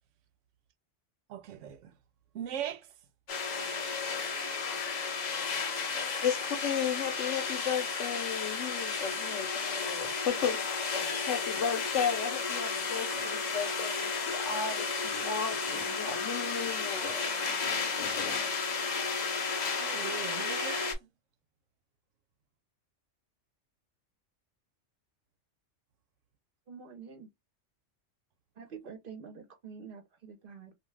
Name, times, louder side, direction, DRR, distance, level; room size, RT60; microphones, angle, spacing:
voice 1, 1.3-2.0 2.3-3.0 19.8-21.1, right 10 dB, 90° right, 0.9 m, -40 dB
sound 1, 3.3-21.0, left 5 dB, 50° left, 0.5 m, -33 dB
voice 2, 6.2-17.3 18.0-18.5, left 7 dB, 80° left, 1.0 m, -34 dB
voice 3, 26.7-27.3 28.6-30.7, right 6 dB, 55° right, 0.8 m, -47 dB
2.4 x 2.3 x 3.1 m
omnidirectional pair, 1.2 m